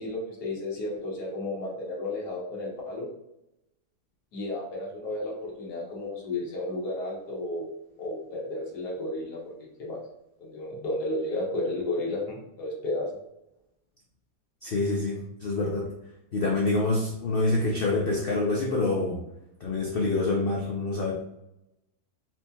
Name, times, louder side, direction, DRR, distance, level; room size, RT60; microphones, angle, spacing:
voice 1, 0.0-3.1 4.3-7.7 8.0-9.4 9.8-10.0 10.4-13.2, left 2 dB, 85° left, -4 dB, 1.5 m, -32 dB
voice 2, 14.6-15.9 16.3-19.2 19.6-21.1, left 2 dB, 70° left, -2 dB, 0.5 m, -26 dB
4.2 x 2.8 x 2.2 m, 0.85 s
omnidirectional pair, 1.7 m